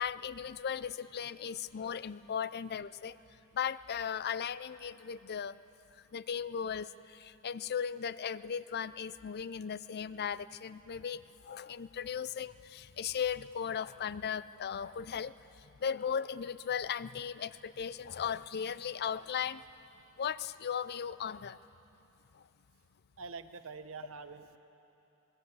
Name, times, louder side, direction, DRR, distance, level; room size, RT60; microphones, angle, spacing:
voice 1, 0.0-3.2 3.5-5.6 6.1-15.3 15.8-19.7 20.2-21.6 22.3-22.4, left 7 dB, 50° left, 16 dB, 0.5 m, -37 dB
voice 2, 23.2-24.6, right 4 dB, 65° right, 9 dB, 1.1 m, -45 dB
23.0 x 20.5 x 8.1 m, 3.0 s
head